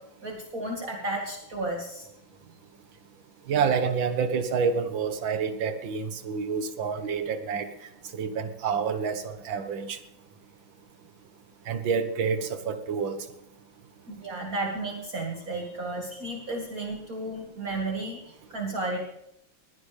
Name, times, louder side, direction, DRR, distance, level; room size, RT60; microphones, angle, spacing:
voice 1, 0.2-2.1 14.1-19.0, right 2 dB, 45° right, 0 dB, 2.3 m, -33 dB
voice 2, 3.5-10.0 11.7-13.2, right 6 dB, 70° right, 8 dB, 2.0 m, -28 dB
21.5 x 15.5 x 3.4 m, 0.81 s
omnidirectional pair, 2.2 m